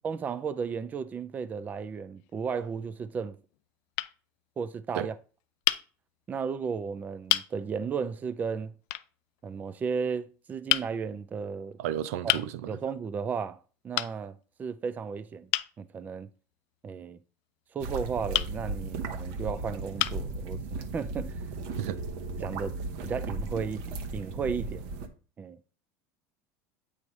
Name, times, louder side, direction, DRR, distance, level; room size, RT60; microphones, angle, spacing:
voice 1, 0.0-3.4 4.6-5.2 6.3-8.7 9.4-11.8 12.2-12.3 12.7-13.6 13.8-15.5 15.8-16.3 16.8-17.2 17.7-21.4 22.4-22.7 23.0-23.8 24.1-24.8 25.4-25.6, right 6 dB, 20° right, 0.4 m, -34 dB
sound 1, 2.2-2.8 3.5-3.7 4.0-4.1 5.6-5.9 6.7-6.8 7.3-7.5 8.9-9.1 10.7-10.9 12.3-12.5 13.9-14.2 15.5-15.7 18.3-18.5 19.4-19.5 20.0-20.3, left 18 dB, 70° left, 0.4 m, -28 dB
voice 2, 11.8-12.8 21.8-22.0, right 11 dB, 85° right, 0.5 m, -33 dB
sound 2, 17.8-25.1, right 3 dB, 65° right, 1.0 m, -36 dB
8.5 x 3.2 x 5.3 m
supercardioid pair, 130°, 7 cm